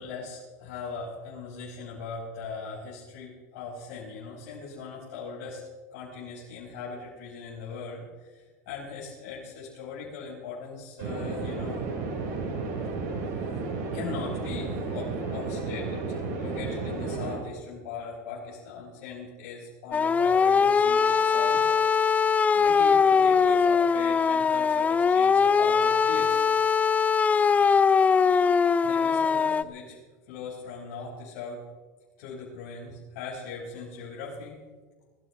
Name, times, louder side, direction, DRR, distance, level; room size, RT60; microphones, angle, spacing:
voice 1, 0.0-5.6 5.9-11.8 13.9-21.7 22.5-26.4 28.8-30.0 30.3-31.6 32.2-34.5, left 5 dB, 75° left, -7 dB, 5.7 m, -40 dB
sound 1, 11.0-17.3, right 4 dB, 75° right, 5.6 m, -32 dB
sound 2, 19.9-29.6, left 6 dB, 15° left, 0.4 m, -21 dB
22.5 x 15.5 x 3.4 m, 1.4 s
supercardioid pair, 125°, 9 cm